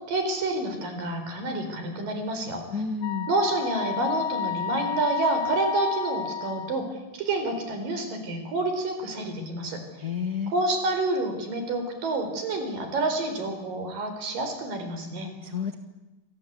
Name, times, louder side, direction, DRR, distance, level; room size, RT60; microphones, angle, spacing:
voice 1, 0.1-2.8 3.3-9.8 10.5-15.3, right 2 dB, 75° right, 6 dB, 6.0 m, -28 dB
voice 2, 2.7-3.3 10.0-10.5 15.4-15.8, left 6 dB, 60° left, 6 dB, 1.0 m, -30 dB
Wind instrument woodwind instrument, 3.0-6.9, left 7 dB, 45° left, 2.3 m, -31 dB
28.5 x 24.5 x 8.3 m, 1.1 s
omnidirectional pair, 4.0 m